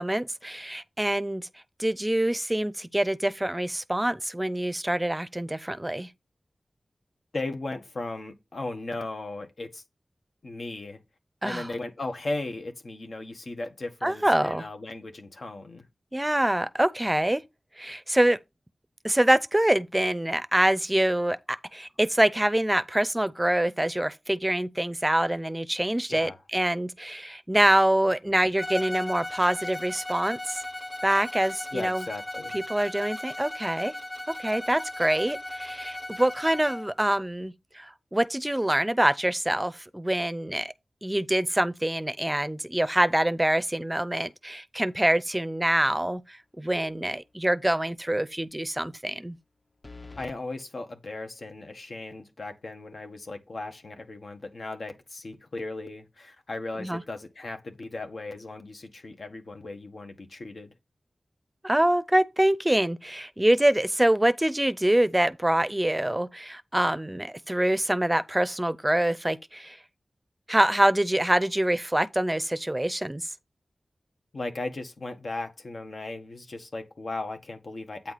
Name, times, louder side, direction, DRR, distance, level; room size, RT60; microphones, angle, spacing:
voice 1, 0.0-1.5 1.8-6.1 11.4-11.7 14.0-14.6 16.1-17.4 17.8-18.4 19.0-30.6 31.0-32.0 32.5-33.9 34.3-40.7 41.0-49.4 56.8-57.0 61.6-69.8 70.5-73.3, right 1 dB, 15° right, 0.5 m, -25 dB
voice 2, 7.3-9.8 10.4-11.0 11.4-15.8 26.1-26.4 31.7-32.6 50.2-60.7 74.3-78.1, left 2 dB, 70° left, 1.5 m, -36 dB
Bowed string instrument, 28.6-36.9, left 1 dB, 10° left, 0.8 m, -37 dB
sound 1, 46.8-47.2 47.5-47.6 49.8-50.4, left 3 dB, 40° left, 0.9 m, -46 dB
8.7 x 4.6 x 4.1 m
wide cardioid pair, 70°, 0 cm